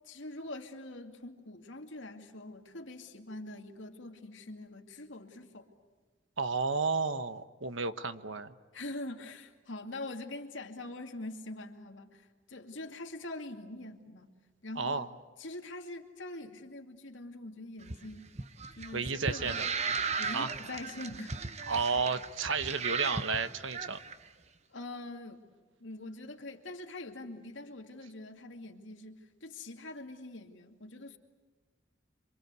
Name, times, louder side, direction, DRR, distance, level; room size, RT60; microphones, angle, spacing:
voice 1, 0.1-5.7 8.7-14.3 14.6-15.1 15.4-18.3 18.8-19.8 20.2-21.4 21.7-21.8 24.7-25.4 25.8-31.2, left 2 dB, 75° left, 4 dB, 2.4 m, -44 dB
voice 2, 6.4-8.5 14.8-15.1 18.9-19.7 20.3-20.5 21.7-24.0, right 4 dB, 80° right, 11 dB, 1.2 m, -32 dB
sound 1, 17.8-24.1, right 4 dB, 35° right, 0.9 m, -37 dB
27.0 x 25.0 x 8.3 m, 1.3 s
head